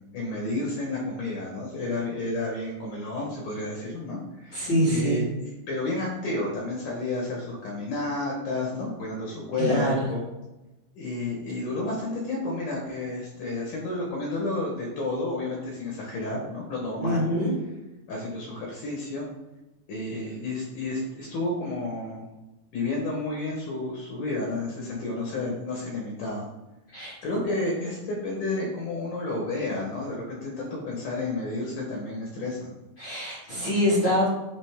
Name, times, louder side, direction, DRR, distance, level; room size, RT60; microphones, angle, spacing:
voice 1, 0.0-5.3 5.7-10.2 10.9-17.3 18.1-19.3 19.9-22.3 22.7-26.5 27.2-32.7, left 2 dB, 90° left, -2 dB, 1.8 m, -31 dB
voice 2, 4.5-5.2 9.6-10.0 17.0-17.5 26.9-27.1 33.0-34.3, equal, 50° left, -8 dB, 1.6 m, -24 dB
9.1 x 3.1 x 3.4 m, 1.0 s
omnidirectional pair, 5.4 m